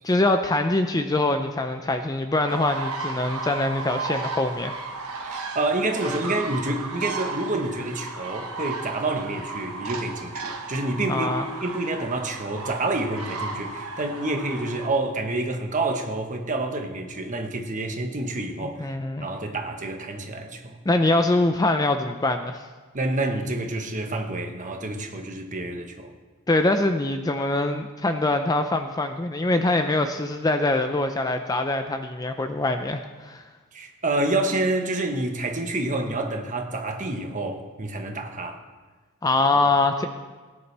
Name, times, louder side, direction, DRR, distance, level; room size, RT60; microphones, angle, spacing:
voice 1, 0.0-4.7 11.1-11.5 18.6-19.3 20.9-22.6 26.5-33.4 39.2-40.1, left 2 dB, 15° left, 7 dB, 0.4 m, -23 dB
sound 1, 2.5-14.9, right 3 dB, 85° right, 1.3 m, -34 dB
voice 2, 5.2-11.3 11.6-20.8 22.9-26.1 33.7-38.6, right 2 dB, 35° right, 4 dB, 1.2 m, -28 dB
18.0 x 9.6 x 3.4 m, 1.4 s
head